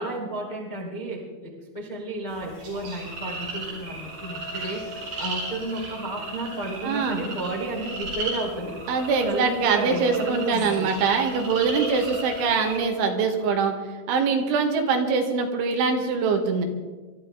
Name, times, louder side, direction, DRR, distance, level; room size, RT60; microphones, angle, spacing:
voice 1, 0.0-8.7 9.2-10.9, right 2 dB, 85° left, -4 dB, 0.4 m, -32 dB
sound 1, 2.3-12.8, right 2 dB, 55° right, 7.0 m, -36 dB
sound 2, 2.6-13.4, left 2 dB, 40° right, 2.6 m, -43 dB
voice 2, 6.8-7.3 8.9-13.7 14.1-16.7, right 5 dB, 80° right, 4 dB, 3.8 m, -23 dB
24.0 x 13.0 x 3.9 m, 1.3 s
omnidirectional pair, 5.5 m